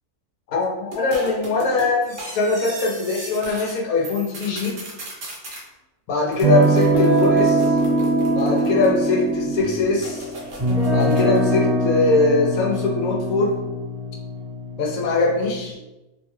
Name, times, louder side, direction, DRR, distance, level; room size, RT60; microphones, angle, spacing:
voice 1, 0.5-4.8 6.1-7.7 8.3-10.3 10.9-13.6 14.8-15.8, left 3 dB, 70° left, 0 dB, 1.0 m, -21 dB
sound 1, 0.9-3.8 4.0-5.6 6.3-9.3 10.0-11.5, right 1 dB, 50° right, 0.6 m, -36 dB
sound 2, 6.4-15.6, right 1 dB, 25° right, 1.4 m, -22 dB
2.7 x 2.3 x 3.0 m, 1.0 s
omnidirectional pair, 1.6 m